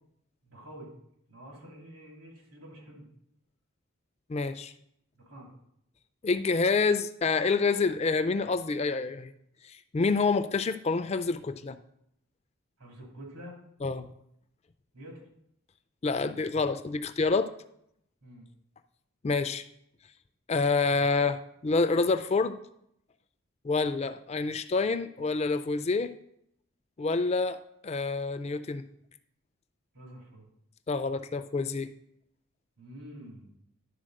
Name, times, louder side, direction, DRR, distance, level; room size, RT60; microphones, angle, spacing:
voice 1, 0.4-1.0 1.3-3.1 5.3-5.5 12.8-13.6 14.9-15.2 18.2-18.5 29.9-30.4 32.8-33.5, equal, 85° right, -1 dB, 3.1 m, -47 dB
voice 2, 4.3-4.7 6.2-9.3 9.6-11.8 13.8-14.1 16.0-17.5 19.2-19.6 20.5-22.6 23.6-26.1 27.0-28.9 30.9-31.9, left 4 dB, 30° left, 12 dB, 0.3 m, -27 dB
11.0 x 4.1 x 6.4 m, 0.75 s
head